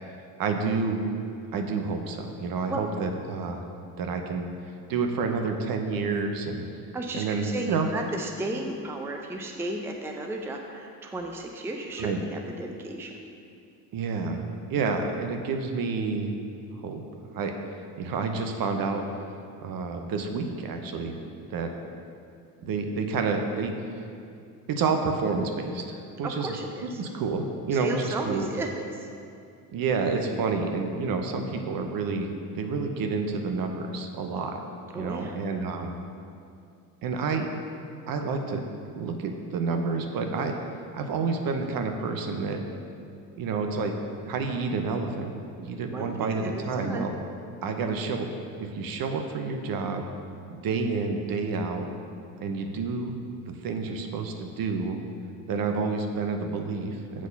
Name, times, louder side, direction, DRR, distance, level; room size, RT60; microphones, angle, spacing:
voice 1, 0.4-1.1 1.5-3.6 4.0-6.7 7.1-7.9 12.0-12.2 13.9-16.4 16.8-17.0 17.3-19.0 19.6-21.2 21.5-21.7 22.6-23.7 24.7-26.6 27.0-28.5 29.7-34.6 34.9-35.9 37.0-37.5 38.1-38.6 39.0-40.6 40.9-42.6 43.4-43.9 44.3-47.1 47.6-48.3 48.6-50.0 50.5-51.9 52.4-53.1 53.6-55.0 55.5-57.3, right 4 dB, 45° right, 4 dB, 0.9 m, -29 dB
voice 2, 6.9-13.2 26.2-27.0 27.7-29.1 34.9-35.4 45.9-47.1, right 2 dB, 5° right, 2 dB, 0.6 m, -34 dB
7.4 x 4.1 x 5.4 m, 2.4 s
hypercardioid pair, 60°, 46 cm